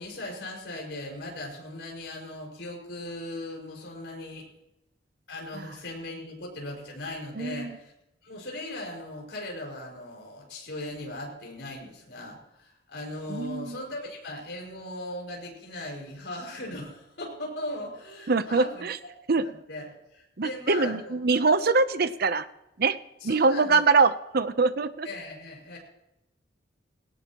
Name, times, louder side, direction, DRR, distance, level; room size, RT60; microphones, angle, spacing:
voice 1, 0.0-4.5 5.3-7.9 8.2-21.4 23.2-23.8 25.0-25.8, left 1 dB, 65° left, 0 dB, 5.6 m, -38 dB
voice 2, 7.4-7.7 13.3-13.8 18.3-19.0 19.3-19.4 20.4-22.5 22.8-23.0 23.2-25.1, right 4 dB, 55° right, 12 dB, 0.8 m, -23 dB
18.5 x 18.0 x 3.0 m, 0.88 s
head